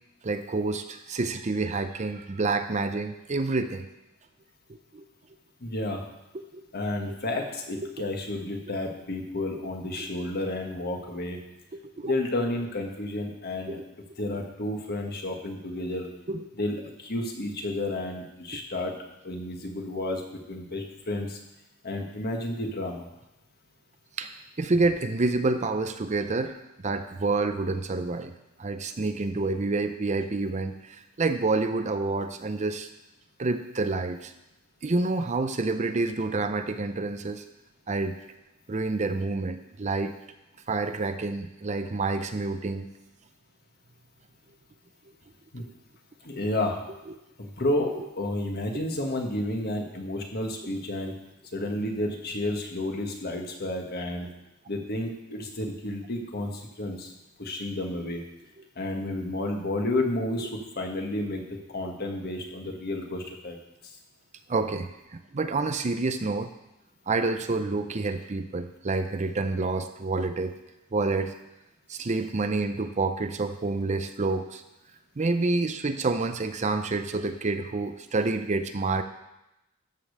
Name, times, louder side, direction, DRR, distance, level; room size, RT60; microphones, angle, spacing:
voice 1, 0.2-3.9 4.9-5.1 6.3-6.6 7.8-7.9 9.5-9.7 10.0-10.1 11.7-12.1 13.7-13.9 16.3-16.5 24.2-28.3 28.6-32.9 33.4-34.3 34.8-37.4 37.9-38.2 38.7-40.1 40.7-42.9 48.0-48.1 64.5-66.5 67.1-70.5 70.9-71.3 71.9-74.6 75.2-79.0, right 3 dB, 35° right, 9 dB, 0.6 m, -28 dB
voice 2, 5.6-6.0 6.7-11.4 12.0-13.8 14.2-16.1 16.6-18.9 19.2-20.2 20.5-21.4 21.8-23.1 45.5-45.6 46.2-46.8 47.4-51.1 51.5-54.3 54.7-57.1 57.4-58.2 58.7-63.6, left 1 dB, 50° left, 2 dB, 1.6 m, -31 dB
13.0 x 5.2 x 6.5 m, 0.91 s
head